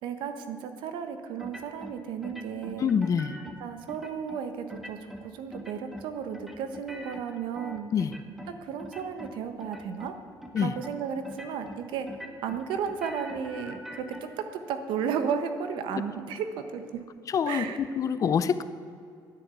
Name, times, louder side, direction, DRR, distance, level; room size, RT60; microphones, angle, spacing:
voice 1, 0.0-3.0 3.6-7.9 8.6-10.1 10.6-12.1 12.4-14.0 14.4-17.0 17.5-17.8, right 7 dB, 85° right, 8 dB, 1.2 m, -33 dB
sound 1, 1.4-2.0 2.2-3.6 3.9-4.4 4.7-5.2 5.5-6.1 6.3-8.5 8.8-9.3 9.6-10.1 10.4-10.9 11.3-11.8 12.1-14.2, equal, 5° right, 1.4 m, -43 dB
voice 2, 2.8-3.3 7.9-8.1 10.5-10.7 17.3-18.6, left 7 dB, 45° left, 13 dB, 0.6 m, -26 dB
11.0 x 9.8 x 8.3 m, 2.4 s
cardioid pair, 115°, 8 cm